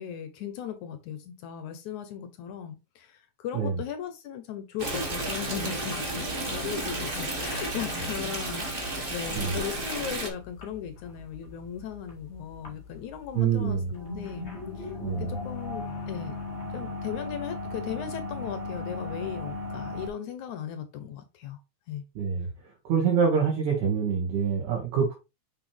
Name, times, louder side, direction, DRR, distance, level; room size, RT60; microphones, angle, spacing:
voice 1, 0.0-14.5 14.8-14.9 15.2-16.4 16.7-21.6 21.9-22.0, left 9 dB, 75° left, 2.3 m, -37 dB
Stream, 4.8-10.3, right 2 dB, 30° right, 1.0 m, -32 dB
sound 1, 7.4-20.1, left 2 dB, 25° left, 1.9 m, -39 dB
voice 2, 13.3-13.9 15.0-15.3 22.2-22.5 22.8-25.1, right 6 dB, 75° right, 3.2 m, -25 dB
6.6 x 6.1 x 3.4 m
omnidirectional pair, 3.5 m